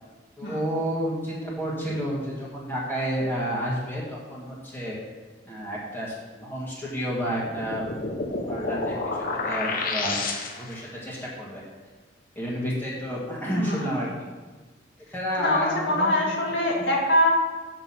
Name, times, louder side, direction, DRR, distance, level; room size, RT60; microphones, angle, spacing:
voice 1, 0.4-4.9 5.4-8.9 9.3-10.2 10.6-11.6 12.3-14.1 15.1-16.2 16.7-16.8, equal, 10° left, -6 dB, 1.5 m, -30 dB
sound 1, 7.3-10.9, left 3 dB, 50° left, 0.9 m, -30 dB
voice 2, 13.6-13.9 15.3-17.3, left 1 dB, 65° left, -2 dB, 1.8 m, -23 dB
6.8 x 6.1 x 5.6 m, 1.3 s
head